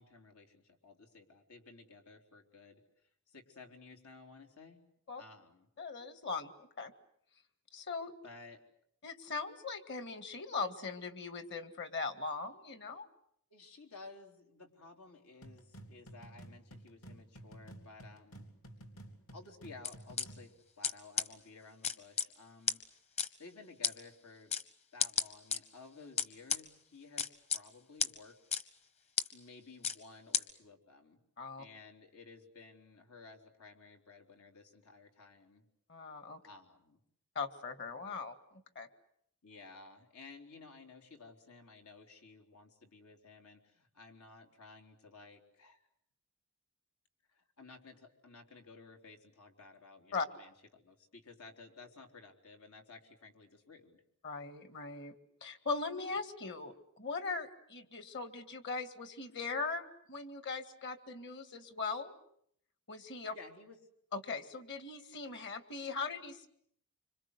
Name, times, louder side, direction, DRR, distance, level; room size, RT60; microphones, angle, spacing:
voice 1, 0.0-2.8 3.3-4.8 5.2-5.7 8.2-8.6 13.5-18.5 19.3-20.5 20.8-22.8 23.4-24.5 24.9-28.6 29.3-31.2 31.6-35.6 36.4-37.0 39.4-45.9 47.3-54.0 63.3-63.8, left 3 dB, 90° left, 3 dB, 3.8 m, -55 dB
voice 2, 5.8-6.9 7.7-8.1 9.0-13.1 31.4-31.6 35.9-36.4 37.4-38.9 50.1-50.3 54.2-55.1 55.4-62.1 62.9-63.3 64.1-66.5, left 4 dB, 55° left, 9 dB, 2.1 m, -40 dB
sound 1, 15.4-20.5, right 1 dB, 70° left, 3.1 m, -52 dB
sound 2, 19.8-20.2 20.8-20.9 21.2-21.3 21.8-22.3 22.7-22.8 23.2-23.3 23.8-23.9 24.5-24.6 25.0-25.6 26.2-26.6 27.2-27.6 28.0-28.1 28.5-28.6 29.2-29.3 29.8-30.0 30.3-30.4, left 6 dB, 30° left, 1.0 m, -31 dB
26.0 x 25.5 x 8.2 m, 0.70 s
head